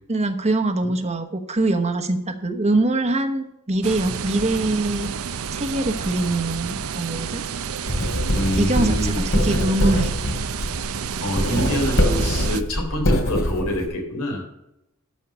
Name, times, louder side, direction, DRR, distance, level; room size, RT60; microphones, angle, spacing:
voice 1, 0.1-5.1 5.5-7.4 8.6-10.1, right 2 dB, 30° right, 5 dB, 1.1 m, -23 dB
sound 1, 3.8-12.6, right 6 dB, 75° right, 0.6 m, -30 dB
Writing, 7.8-13.9, equal, 70° left, 2.7 m, -23 dB
voice 2, 8.3-9.2 11.2-14.4, equal, 85° left, 1 dB, 3.8 m, -26 dB
12.5 x 5.6 x 6.3 m, 0.84 s
head